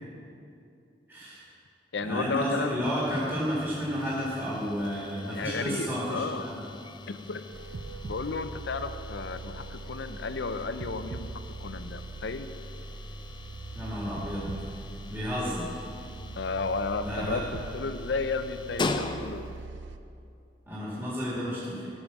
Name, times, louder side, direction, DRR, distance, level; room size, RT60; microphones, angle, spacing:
voice 1, 1.1-1.4 2.0-6.6 13.7-14.5 15.1-15.7 17.0-17.4 20.7-21.9, equal, 15° right, -8 dB, 2.2 m, -31 dB
voice 2, 1.9-2.9 5.0-6.5 7.1-7.4 8.0-11.3 11.6-12.5 16.4-19.5, left 4 dB, 70° left, 10 dB, 0.6 m, -33 dB
sound 1, 2.8-19.7, left 2 dB, 25° left, 0.4 m, -41 dB
sound 2, 7.5-20.0, right 3 dB, 75° right, 0.5 m, -42 dB
13.5 x 5.0 x 7.2 m, 2.6 s
head